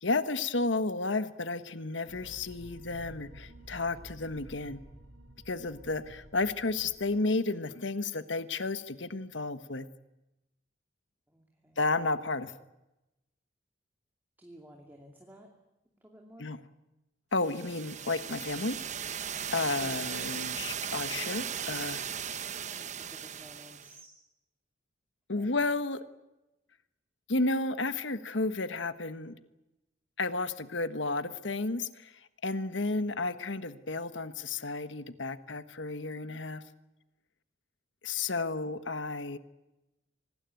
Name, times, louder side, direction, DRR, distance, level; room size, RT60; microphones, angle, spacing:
voice 1, 0.0-4.8 5.5-9.9 11.8-12.5 16.4-16.6 17.3-18.8 19.2-22.0 25.3-26.0 27.3-29.3 30.2-32.1 32.4-36.6 38.0-39.4, left 3 dB, 75° left, 12 dB, 1.4 m, -32 dB
sound 1, 2.0-7.1, right 1 dB, 85° right, 6.8 m, -51 dB
voice 2, 11.3-11.8 14.4-15.5 15.9-16.5 19.7-20.1 22.7-24.2 25.3-25.5 38.6-38.8, equal, 10° right, 1 dB, 2.6 m, -53 dB
sound 2, 17.4-24.0, right 8 dB, 40° right, 1.0 m, -37 dB
25.5 x 20.0 x 9.2 m, 0.96 s
head